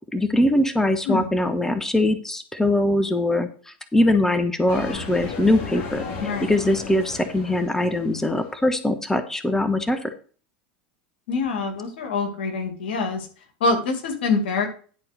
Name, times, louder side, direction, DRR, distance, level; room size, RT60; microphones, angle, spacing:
voice 1, 0.1-6.0 6.5-10.1, left 1 dB, 10° left, 9 dB, 1.2 m, -22 dB
sound 1, 4.7-8.6, left 4 dB, 50° left, 3.0 m, -35 dB
voice 2, 6.2-6.6 11.3-13.3 13.6-14.7, left 4 dB, 75° left, 5 dB, 2.3 m, -25 dB
11.0 x 4.5 x 6.6 m, 0.41 s
hypercardioid pair, 85°, 6 cm